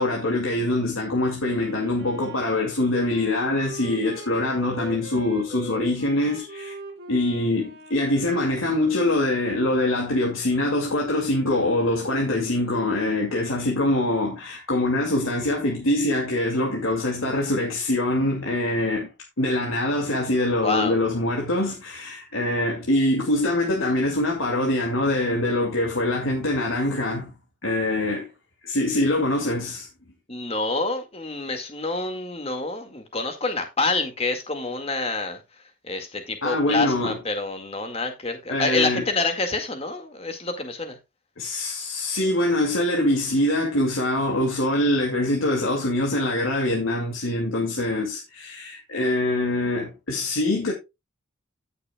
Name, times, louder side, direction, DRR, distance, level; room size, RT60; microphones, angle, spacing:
voice 1, 0.0-6.7 7.1-19.1 19.4-27.3 27.6-28.3 28.6-29.9 36.4-37.2 38.5-39.0 41.4-50.7, left 1 dB, 80° left, 2.4 m, -24 dB
Wind instrument woodwind instrument, 1.4-9.5, right 1 dB, 50° right, 2.9 m, -41 dB
voice 2, 20.6-21.0 30.3-35.4 35.8-41.0, left 3 dB, 30° left, 1.9 m, -27 dB
16.5 x 6.6 x 2.3 m
head